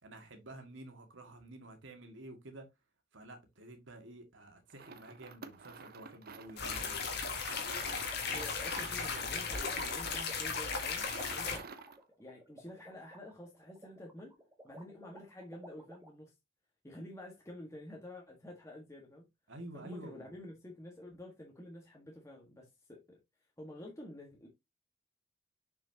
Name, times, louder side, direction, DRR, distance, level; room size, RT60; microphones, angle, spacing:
voice 1, 0.0-2.7 3.1-7.0 19.5-20.2, right 1 dB, 75° right, 2.0 m, -50 dB
sound 1, 4.7-12.0, right 4 dB, 50° right, 0.9 m, -50 dB
sound 2, 6.6-11.6, left 5 dB, 55° left, 1.8 m, -36 dB
sound 3, 7.0-16.1, right 1 dB, 15° right, 1.5 m, -56 dB
voice 2, 8.3-11.7 12.2-14.4 14.6-16.3 16.8-19.3 19.7-23.2 23.6-24.5, left 1 dB, 15° left, 1.6 m, -49 dB
6.8 x 6.1 x 2.8 m
head